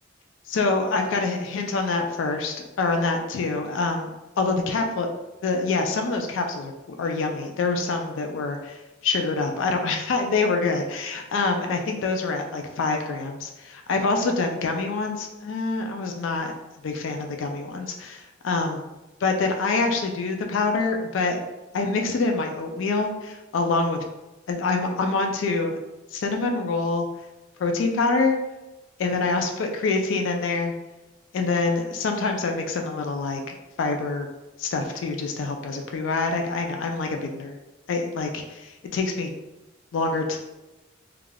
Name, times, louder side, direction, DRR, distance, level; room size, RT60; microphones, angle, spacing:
voice 1, 0.5-5.1 5.4-16.5 16.8-18.8 19.2-21.4 21.7-24.0 24.5-25.8 26.1-27.1 27.6-28.4 29.0-30.7 31.3-34.3 34.6-37.6 37.9-39.3 39.9-40.4, left 3 dB, 70° left, 4 dB, 0.3 m, -26 dB
3.2 x 2.4 x 2.2 m, 1.0 s
head